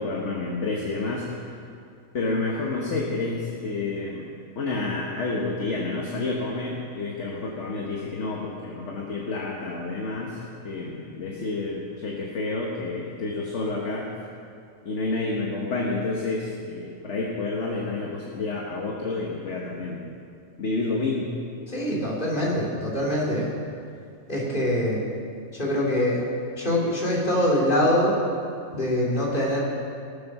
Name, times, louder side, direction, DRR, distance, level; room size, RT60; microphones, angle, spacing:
voice 1, 0.0-1.7 2.1-4.3 4.5-10.4 10.6-14.1 14.8-20.0 20.6-21.3, left 3 dB, 60° left, -2 dB, 1.5 m, -29 dB
voice 2, 21.7-23.5 24.3-25.0 25.5-26.2 26.6-28.2 28.7-29.6, left 1 dB, 35° left, -5 dB, 3.0 m, -24 dB
18.5 x 7.4 x 6.0 m, 2.4 s
omnidirectional pair, 1.4 m